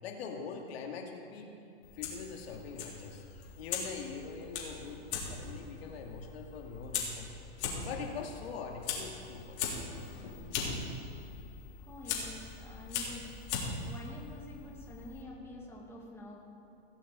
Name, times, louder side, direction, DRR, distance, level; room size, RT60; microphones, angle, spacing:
voice 1, 0.0-1.5 1.9-7.3 7.8-9.8, left 5 dB, 65° left, 1 dB, 2.3 m, -43 dB
Fire, 1.8-15.2, left 5 dB, 40° left, 3.5 m, -40 dB
voice 2, 11.8-16.4, left 1 dB, 5° left, -3 dB, 2.2 m, -48 dB
17.5 x 7.1 x 7.6 m, 2.9 s
hypercardioid pair, 140°, 34 cm